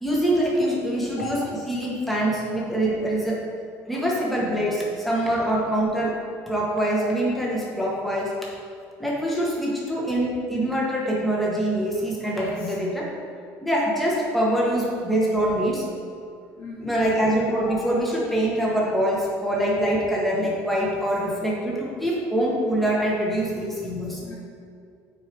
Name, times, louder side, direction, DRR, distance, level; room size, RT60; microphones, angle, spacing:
voice 1, 0.0-1.4 1.7-3.4 3.9-6.1 6.5-8.3 9.0-13.1 13.6-15.8 16.8-24.2, right 1 dB, ahead, -5 dB, 1.5 m, -24 dB
voice 2, 12.2-12.7 16.6-17.2 24.2-24.3, left 4 dB, 50° left, -8 dB, 1.5 m, -38 dB
9.0 x 4.7 x 3.6 m, 2.4 s
cardioid pair, 140°, 6 cm